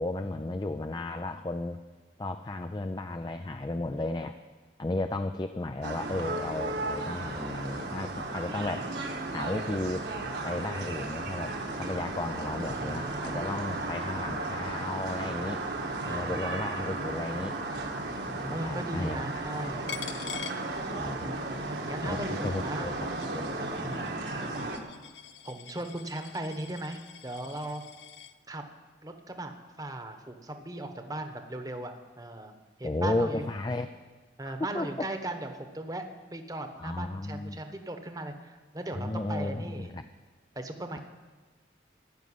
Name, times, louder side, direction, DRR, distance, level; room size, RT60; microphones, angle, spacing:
voice 1, 0.0-1.8 2.2-4.4 4.8-8.9 9.3-10.1 10.4-15.6 16.0-17.6 18.3-19.7 21.0-21.4 22.0-23.1 23.3-24.0 32.8-33.9 34.4-35.1 36.8-37.6 38.9-40.0, left 2 dB, 25° left, 8 dB, 0.4 m, -34 dB
sound 1, 5.8-24.8, right 2 dB, 70° right, 1.7 m, -35 dB
voice 2, 12.5-13.7 16.0-16.5 18.5-19.9 21.9-22.9 24.2-24.8 25.4-27.8 28.5-28.6 29.0-32.5 32.8-33.5 34.4-39.9 40.5-41.0, right 1 dB, 20° right, 6 dB, 1.1 m, -38 dB
Coin (dropping), 19.9-21.4 21.7-28.3, left 10 dB, 80° left, 0.5 m, -45 dB
14.5 x 6.5 x 9.9 m, 1.4 s
head